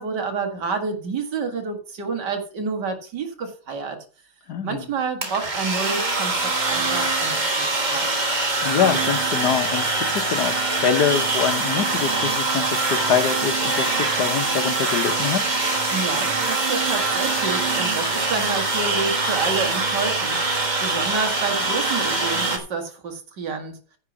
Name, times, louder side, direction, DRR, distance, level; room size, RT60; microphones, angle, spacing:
voice 1, 0.0-4.0 4.6-6.3 6.7-8.1 15.9-23.7, right 4 dB, 60° right, 2.4 m, -29 dB
voice 2, 4.5-4.8 8.6-15.4, left 8 dB, 60° left, 1.4 m, -24 dB
sound 1, 5.2-22.6, right 3 dB, 25° right, 1.2 m, -23 dB
10.0 x 4.8 x 7.0 m
omnidirectional pair, 2.1 m